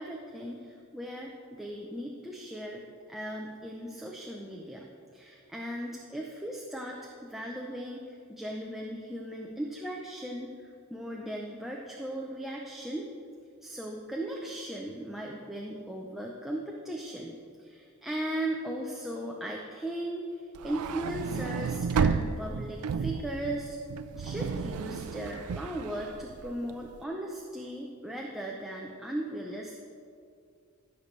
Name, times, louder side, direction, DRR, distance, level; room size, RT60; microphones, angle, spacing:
voice 1, 0.0-2.8 3.1-13.1 13.6-23.8 24.2-29.8, right 1 dB, ahead, -1 dB, 0.5 m, -37 dB
sound 1, 20.5-26.9, right 5 dB, 80° right, 0.4 m, -32 dB
15.0 x 6.8 x 3.2 m, 2.3 s
head